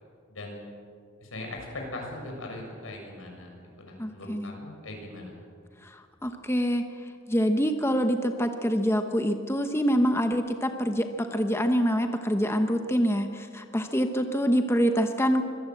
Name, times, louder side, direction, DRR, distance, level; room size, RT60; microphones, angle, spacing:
voice 1, 0.3-0.7 1.2-3.5 3.8-5.3, left 2 dB, 90° left, 1 dB, 7.0 m, -40 dB
voice 2, 4.0-4.5 5.8-6.8 7.3-15.4, equal, 15° left, 6 dB, 1.1 m, -25 dB
25.0 x 17.5 x 7.8 m, 2.2 s
head